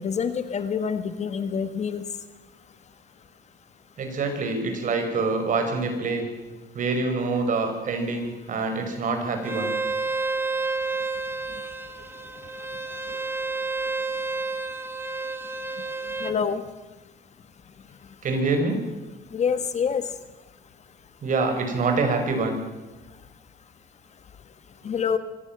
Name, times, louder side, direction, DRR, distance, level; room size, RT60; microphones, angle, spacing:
voice 1, 0.0-2.0 16.2-16.6 19.3-20.0 24.8-25.2, left 6 dB, 40° left, 11 dB, 1.6 m, -26 dB
voice 2, 4.0-6.3 6.7-9.7 18.2-18.8 21.2-22.6, right 3 dB, 50° right, 5 dB, 5.5 m, -25 dB
Bowed string instrument, 9.4-16.4, right 3 dB, 15° right, 1.4 m, -30 dB
24.5 x 16.5 x 7.6 m, 1.1 s
cardioid pair, 110°, 17 cm